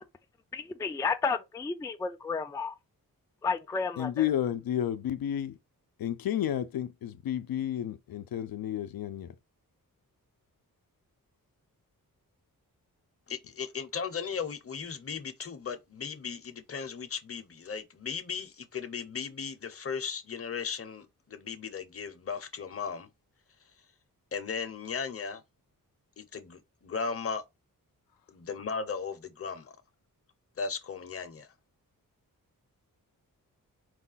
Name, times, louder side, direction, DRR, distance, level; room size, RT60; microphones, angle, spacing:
voice 1, 0.5-2.7 3.4-4.3, left 5 dB, 10° left, 0.3 m, -32 dB
voice 2, 4.0-5.6 6.0-9.3, left 10 dB, 75° left, 0.5 m, -31 dB
voice 3, 13.3-23.1 24.3-25.4 26.2-27.4 28.3-29.8 30.6-31.5, left 6 dB, 40° left, 0.7 m, -36 dB
4.8 x 2.3 x 3.9 m
wide cardioid pair, 160°, 36 cm